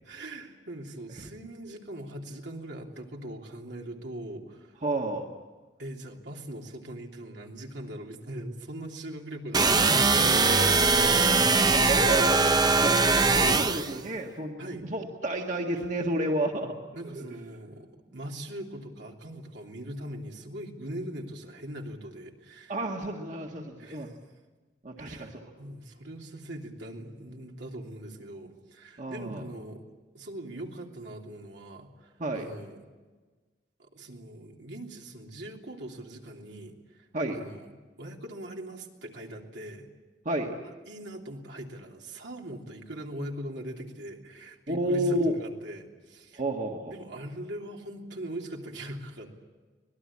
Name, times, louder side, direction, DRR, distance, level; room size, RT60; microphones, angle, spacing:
voice 1, 0.0-4.8 5.8-10.3 14.6-14.9 16.9-22.8 23.8-24.2 25.0-29.8 30.1-32.8 33.8-37.1 37.3-37.7 38.0-39.9 40.9-46.4 46.9-49.4, right 1 dB, 75° right, 1 dB, 3.1 m, -41 dB
voice 2, 4.8-5.3 10.2-11.3 11.6-12.4 12.8-13.0 13.3-16.8 17.2-17.3 22.7-24.1 24.8-25.4 29.0-29.4 32.2-32.5 37.1-37.5 40.3-40.6 44.7-45.4 46.4-46.9, right 1 dB, 45° right, 2 dB, 1.8 m, -31 dB
sound 1, 9.5-14.0, right 3 dB, 25° right, 0.8 m, -21 dB
25.0 x 19.5 x 8.7 m, 1.3 s
head